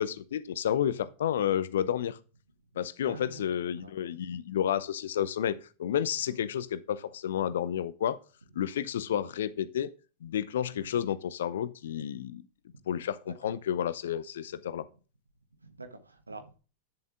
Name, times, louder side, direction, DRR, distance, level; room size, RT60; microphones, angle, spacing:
voice 1, 0.0-2.2 2.8-8.2 8.5-9.9 10.2-12.5 12.9-14.9, left 10 dB, 60° left, 0.7 m, -31 dB
voice 2, 3.0-3.9 6.3-6.4 7.4-7.6 9.0-9.1 10.7-10.9 12.7-13.6 15.6-16.6, right 2 dB, 80° right, 1.5 m, -48 dB
9.9 x 7.3 x 3.6 m
figure-of-eight pair, 90°, 0 cm